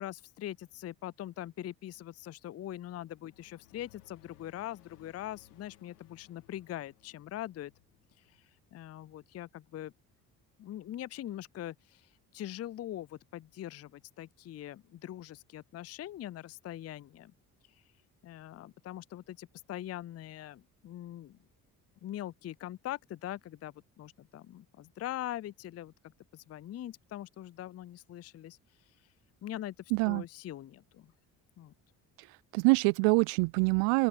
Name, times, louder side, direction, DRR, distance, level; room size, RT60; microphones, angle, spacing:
voice 1, 0.0-7.7 8.3-8.4 8.7-9.9 10.6-17.3 18.2-21.4 22.0-25.9 26.3-28.6 29.4-29.7 30.0-31.1 31.6-31.7, left 13 dB, 35° left, 0.5 m, -42 dB
sound 1, 2.7-9.3, left 15 dB, 85° left, 2.5 m, -63 dB
voice 2, 29.9-30.2 32.2-34.1, right 32 dB, 75° right, 0.6 m, -26 dB
open air
hypercardioid pair, 50°, 46 cm